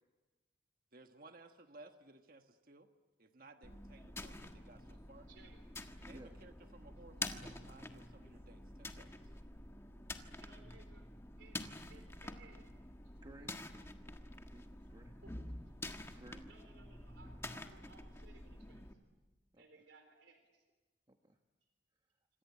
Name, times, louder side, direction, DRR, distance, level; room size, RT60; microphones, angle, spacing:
voice 1, 0.9-2.9 3.2-5.3 6.0-9.1, right 2 dB, 50° right, 6 dB, 1.5 m, -59 dB
sound 1, 3.6-18.9, left 2 dB, 15° left, 1.5 m, -48 dB
voice 2, 5.3-5.6 7.2-7.7 9.9-11.1 11.4-12.7 13.0-13.1 15.2-15.4 16.4-19.0 19.6-20.6, right 3 dB, 80° right, 5 dB, 3.6 m, -63 dB
voice 3, 13.2-13.6 14.4-15.2 16.1-16.5 19.5-19.6 21.1-21.4, right 1 dB, 25° right, 4 dB, 1.1 m, -57 dB
26.5 x 26.5 x 8.5 m, 1.2 s
head